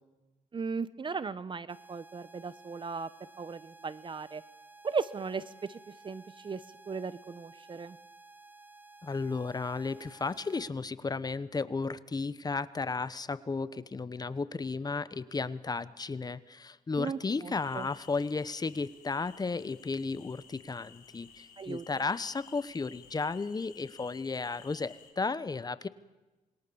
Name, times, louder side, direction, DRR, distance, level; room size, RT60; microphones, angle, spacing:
voice 1, 0.5-3.1 3.4-4.4 4.8-8.0 17.0-17.9 21.6-21.9, right 5 dB, 35° right, 17 dB, 1.0 m, -37 dB
sound 1, 1.7-10.7, right 3 dB, 15° right, 1.1 m, -55 dB
voice 2, 9.0-25.9, left 4 dB, 25° left, 16 dB, 1.1 m, -34 dB
sound 2, 17.5-25.1, left 7 dB, 85° left, 4.9 m, -56 dB
27.5 x 21.5 x 7.1 m, 1.1 s
cardioid pair, 90°, 14 cm